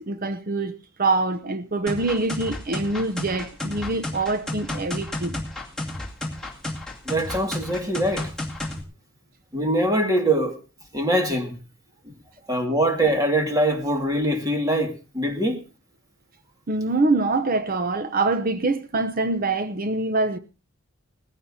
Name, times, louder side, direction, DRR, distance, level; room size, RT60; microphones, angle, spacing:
voice 1, 0.0-5.4 16.7-20.4, right 3 dB, 45° right, 0.7 m, -25 dB
sound 1, 1.9-8.8, left 1 dB, 5° left, 2.3 m, -32 dB
voice 2, 7.1-8.3 9.5-10.6 10.9-11.6 12.5-15.6, right 1 dB, 20° right, 2.0 m, -23 dB
19.5 x 15.5 x 2.7 m
head